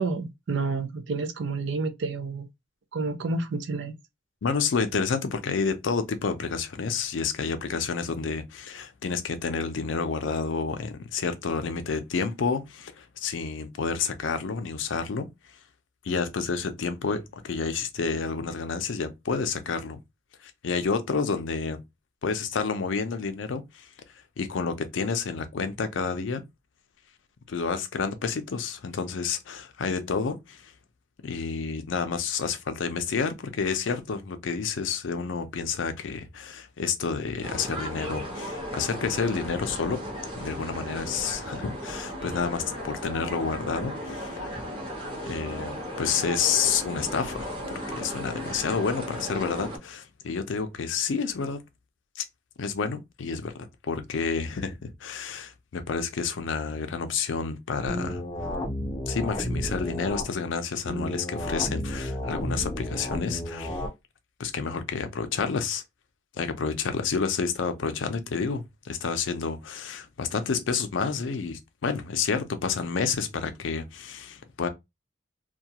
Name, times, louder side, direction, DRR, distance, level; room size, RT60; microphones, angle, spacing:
voice 1, 0.0-2.5 2.9-4.0, right 3 dB, 65° right, 0.4 m, -29 dB
voice 2, 4.4-15.3 16.0-20.0 20.4-21.8 22.2-23.9 24.4-26.4 27.5-30.7 31.2-40.0 40.4-44.6 45.2-51.6 52.2-52.3 52.6-53.5 53.8-58.2 59.1-63.8 64.4-65.8 66.3-74.7, left 5 dB, 80° left, 0.5 m, -29 dB
sound 1, 37.4-49.8, equal, 25° right, 0.8 m, -36 dB
sound 2, 57.9-60.3 60.9-63.9, left 1 dB, 20° left, 0.5 m, -32 dB
2.3 x 2.3 x 2.8 m
head